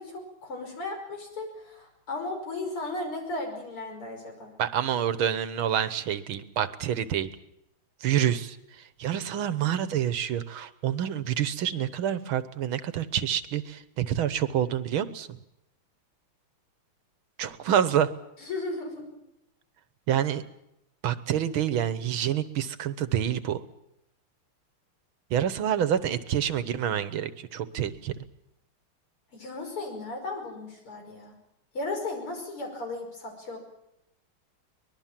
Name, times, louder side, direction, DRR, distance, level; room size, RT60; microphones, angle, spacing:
voice 1, 0.0-4.5 18.4-19.0 29.3-31.3 31.7-33.6, left 2 dB, 85° left, 3 dB, 6.4 m, -35 dB
voice 2, 4.6-7.3 8.0-8.6 9.0-15.4 17.4-18.1 20.1-20.4 21.0-23.6 25.3-28.1, right 10 dB, 75° right, 13 dB, 1.9 m, -27 dB
24.0 x 20.5 x 7.5 m, 0.83 s
omnidirectional pair, 2.4 m